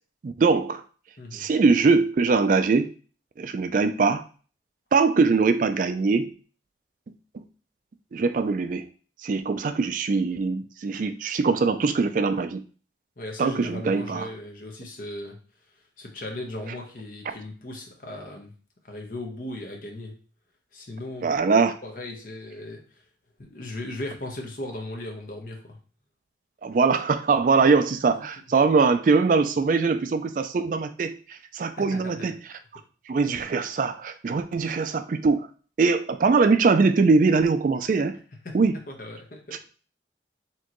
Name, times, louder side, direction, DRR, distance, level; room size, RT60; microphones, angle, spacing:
voice 1, 0.2-0.8 1.3-2.9 3.4-4.2 4.9-6.3 7.1-7.4 8.1-8.9 9.2-12.6 13.4-14.3 17.3-17.4 21.2-21.8 26.6-32.4 33.1-35.5 35.8-38.2 38.5-38.7 39.5-39.6, right 4 dB, 45° right, 10 dB, 0.3 m, -22 dB
voice 2, 13.2-15.4 16.0-18.5 18.8-20.2 20.7-21.3 21.8-23.0 23.4-25.8 27.5-28.3 31.8-32.4 38.4-38.6 38.9-39.6, left 1 dB, 45° left, 1 dB, 1.0 m, -37 dB
4.4 x 3.6 x 3.0 m, 0.39 s
head